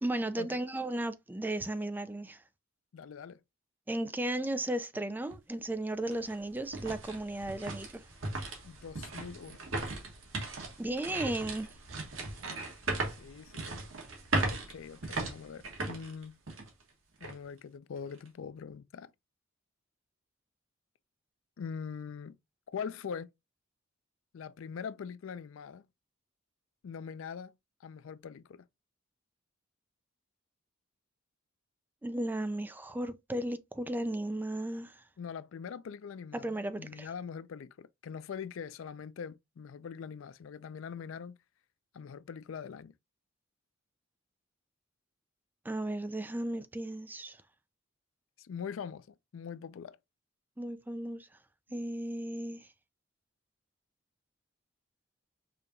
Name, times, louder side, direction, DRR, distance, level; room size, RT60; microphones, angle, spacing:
voice 1, 0.0-2.4 3.9-8.1 10.8-11.7 32.0-35.0 36.3-37.1 45.6-47.4 50.6-51.3 51.7-52.7, right 1 dB, 10° right, 0.3 m, -35 dB
voice 2, 2.9-3.4 8.6-9.6 13.2-13.8 14.5-16.4 17.2-19.1 21.6-22.4 22.7-23.3 24.3-25.9 26.8-27.6 27.8-28.6 35.2-41.4 41.9-42.9 48.4-50.0, left 6 dB, 70° left, 0.4 m, -43 dB
sound 1, 5.3-5.4 5.9-16.8 17.2-17.3 17.9-18.3, right 2 dB, 75° right, 1.4 m, -37 dB
5.0 x 2.9 x 2.6 m
head